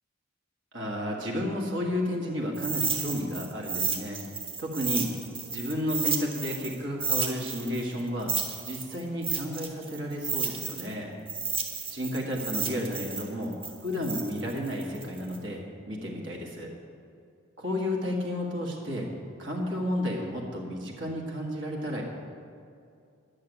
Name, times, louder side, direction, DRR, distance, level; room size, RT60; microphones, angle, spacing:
voice 1, 0.7-4.2 4.6-5.1 5.5-8.3 8.6-11.1 11.9-13.5 13.8-16.7 17.6-19.1 19.4-22.0, equal, 60° right, -1 dB, 1.8 m, -32 dB
sound 1, 2.5-6.7 7.0-10.9 11.3-15.4, right 5 dB, 25° right, 1.1 m, -32 dB
11.0 x 6.7 x 9.3 m, 2.5 s
head